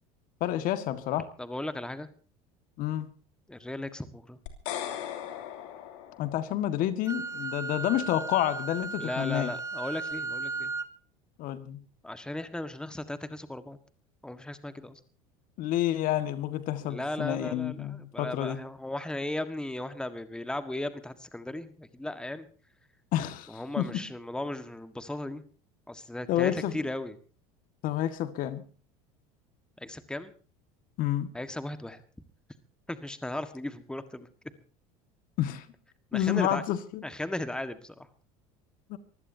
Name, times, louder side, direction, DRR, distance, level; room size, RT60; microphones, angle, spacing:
voice 1, 0.4-1.3 2.8-3.1 6.2-9.5 11.4-11.8 15.6-18.6 23.1-24.0 26.3-26.9 27.8-28.6 31.0-31.3 35.4-35.7 36.1-37.0 38.9-39.0, left 12 dB, 55° left, 10 dB, 1.8 m, -29 dB
voice 2, 1.4-2.1 3.5-4.4 9.0-10.7 12.0-13.8 14.2-15.0 16.8-22.5 23.5-25.4 25.9-27.2 29.8-30.3 31.3-32.0 32.9-34.3 36.1-36.6 37.0-38.1, left 1 dB, 5° left, 10 dB, 1.6 m, -36 dB
sound 1, 4.5-6.8, left 11 dB, 70° left, 2.9 m, -38 dB
Wind instrument woodwind instrument, 7.1-10.9, right 3 dB, 20° right, 1.3 m, -35 dB
24.0 x 16.0 x 2.8 m, 0.39 s
hypercardioid pair, 90°, 17 cm